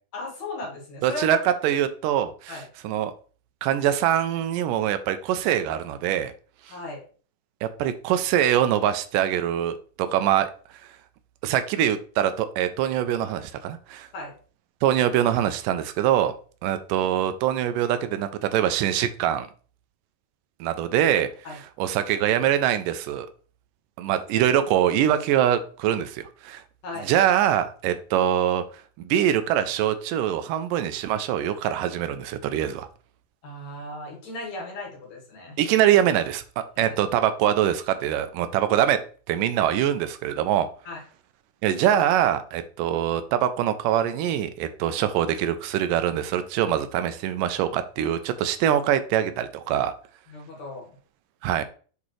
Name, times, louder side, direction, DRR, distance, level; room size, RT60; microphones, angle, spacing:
voice 1, 0.1-1.4 2.5-2.6 6.7-7.0 14.1-14.3 21.4-21.6 26.8-27.1 33.4-35.6 36.8-37.0 40.8-41.0 50.3-51.0, left 2 dB, 60° left, -1 dB, 3.0 m, -36 dB
voice 2, 1.0-3.1 3.6-6.3 7.6-10.5 11.4-14.1 14.8-16.3 16.6-19.5 20.6-21.3 21.8-23.3 24.0-26.6 27.1-28.6 29.1-32.9 35.6-36.4 36.8-39.0 39.3-40.7 41.6-49.9 51.4-51.6, right 10 dB, 85° right, 10 dB, 2.2 m, -23 dB
8.3 x 4.1 x 3.2 m, 0.40 s
omnidirectional pair, 3.9 m